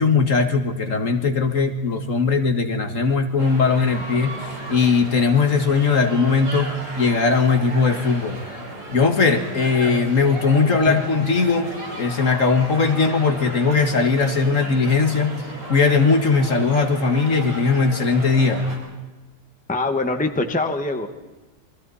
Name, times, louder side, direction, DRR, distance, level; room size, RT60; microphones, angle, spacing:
voice 1, 0.0-4.4 4.7-6.7 7.0-8.4 8.9-11.7 12.0-15.3 15.7-18.6, left 4 dB, 50° left, 6 dB, 2.0 m, -19 dB
sound 1, 3.4-18.8, right 1 dB, 75° right, 6.5 m, -35 dB
voice 2, 19.7-21.1, left 2 dB, 5° left, 6 dB, 1.3 m, -23 dB
28.5 x 23.5 x 4.2 m, 1.2 s
omnidirectional pair, 1.8 m